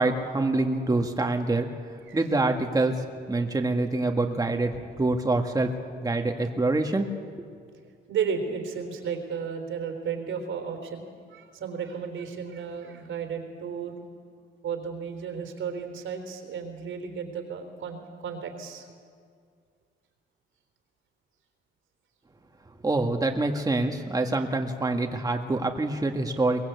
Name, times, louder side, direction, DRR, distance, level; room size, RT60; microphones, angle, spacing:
voice 1, 0.0-1.7 2.1-3.0 3.3-5.7 6.0-7.1 7.4-7.5 22.8-26.6, right 2 dB, 20° right, 3 dB, 1.8 m, -25 dB
voice 2, 8.1-13.9 14.6-18.9, right 6 dB, 75° right, 6 dB, 3.8 m, -33 dB
23.0 x 19.0 x 8.2 m, 2.2 s
cardioid pair, 90°, 20 cm